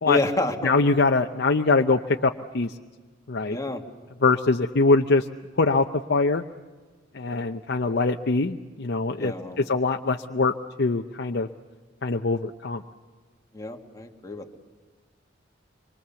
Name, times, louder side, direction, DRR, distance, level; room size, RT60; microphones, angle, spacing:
voice 1, 0.1-0.7 3.5-3.8 9.2-9.7 13.5-14.6, left 2 dB, 20° left, 3 dB, 2.0 m, -28 dB
voice 2, 0.6-2.8 3.3-3.6 4.2-5.3 5.6-6.4 7.1-11.5 12.0-12.8, left 3 dB, 60° left, 3 dB, 0.8 m, -23 dB
26.5 x 23.0 x 7.1 m, 1.4 s
head